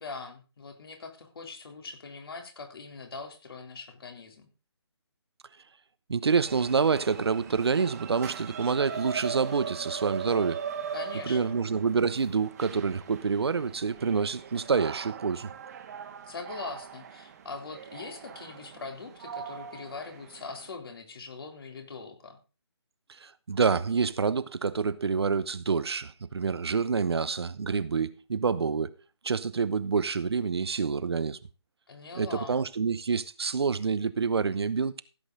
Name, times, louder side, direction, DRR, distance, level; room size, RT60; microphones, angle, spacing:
voice 1, 0.0-4.5 10.9-11.5 16.3-22.4 31.9-32.6, left 4 dB, 55° left, 3.6 m, -42 dB
voice 2, 6.1-10.6 11.3-15.5 23.2-29.0 29.2-31.4 32.2-35.0, right 5 dB, 65° right, 1.0 m, -27 dB
sound 1, 6.4-20.7, right 7 dB, 35° right, 1.6 m, -40 dB
15.5 x 8.0 x 3.9 m
figure-of-eight pair, 150°, 15 cm